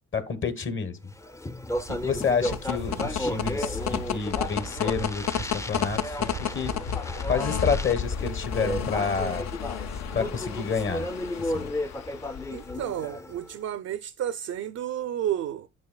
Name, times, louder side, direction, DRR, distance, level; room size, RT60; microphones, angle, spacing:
voice 1, 0.1-1.0 1.9-6.7 7.3-9.5 10.1-11.1 11.4-11.7, left 5 dB, 40° left, 1.1 m, -29 dB
Speech, 1.1-13.5, left 1 dB, 10° left, 0.5 m, -34 dB
sound 1, 1.7-9.4, right 8 dB, 85° right, 0.8 m, -42 dB
sound 2, 2.1-12.8, left 8 dB, 60° left, 0.6 m, -32 dB
voice 2, 12.5-15.7, right 10 dB, 55° right, 0.5 m, -31 dB
9.5 x 5.5 x 2.2 m
cardioid pair, 90°, 30 cm